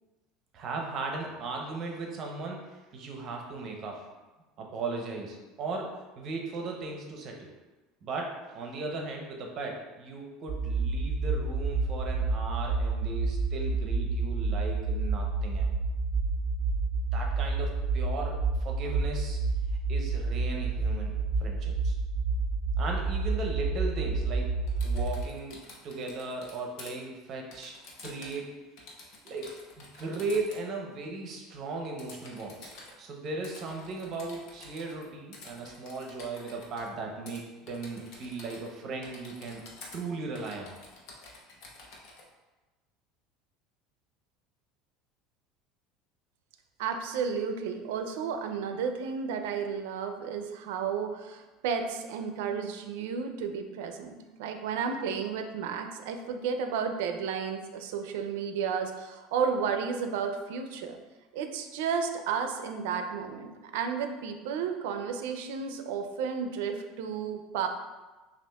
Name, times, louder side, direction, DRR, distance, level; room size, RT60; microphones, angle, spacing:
voice 1, 0.5-4.1 4.6-7.5 8.0-15.7 17.1-19.4 19.9-21.1 21.4-22.0 22.8-24.6 24.8-25.6 25.8-27.7 28.0-28.5 29.2-32.7 33.0-39.6 39.9-40.7, right 3 dB, 40° right, 1 dB, 0.7 m, -37 dB
sound 1, 10.5-25.3, right 3 dB, 20° right, 1.1 m, -29 dB
Typing, 24.7-26.9 27.5-28.5 28.8-30.6 32.0-32.9 33.4-35.0 35.3-36.9 37.3-37.4 37.7-38.7 39.0-40.0 40.3-42.2, left 2 dB, 60° left, 0.8 m, -49 dB
voice 2, 46.8-61.0 61.3-67.7, right 6 dB, 85° right, 6 dB, 0.4 m, -32 dB
6.1 x 2.4 x 2.3 m, 1.2 s
cardioid pair, 140°, 0 cm